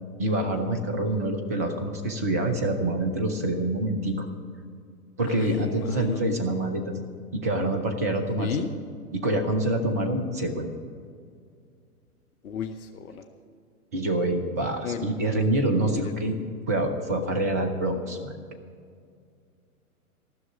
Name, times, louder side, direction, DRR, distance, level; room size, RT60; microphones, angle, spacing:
voice 1, 0.2-4.3 5.2-6.9 7.3-8.7 9.1-10.7 13.9-16.4 16.7-18.3, right 1 dB, 15° right, 7 dB, 0.3 m, -26 dB
voice 2, 5.4-6.2 8.4-8.7 12.4-13.3 14.8-15.0 15.9-16.1, left 7 dB, 70° left, 7 dB, 0.9 m, -32 dB
15.0 x 6.2 x 9.0 m, 2.2 s
figure-of-eight pair, 110°, 45 cm